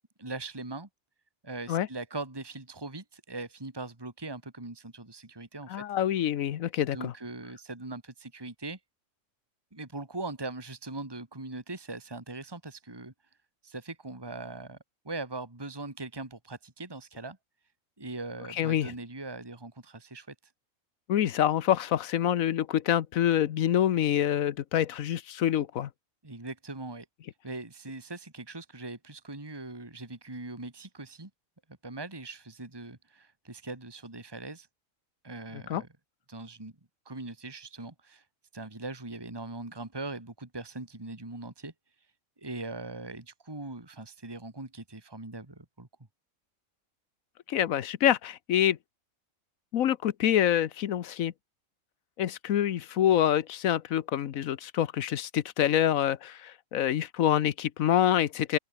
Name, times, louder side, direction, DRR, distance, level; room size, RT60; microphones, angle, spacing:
voice 1, 0.2-0.9 1.4-5.8 6.9-8.8 9.7-13.1 13.6-14.8 15.0-17.4 18.0-20.3 26.2-27.1 27.4-31.3 31.8-34.7 35.2-35.9 36.3-36.7 37.1-38.2 38.5-41.7 42.4-45.9, right 2 dB, 15° right, 2.2 m, -40 dB
voice 2, 5.7-7.1 18.5-18.9 21.1-25.9 35.5-35.8 47.5-48.8 49.7-51.3 52.2-58.6, left 11 dB, 75° left, 1.3 m, -26 dB
open air
omnidirectional pair, 1.5 m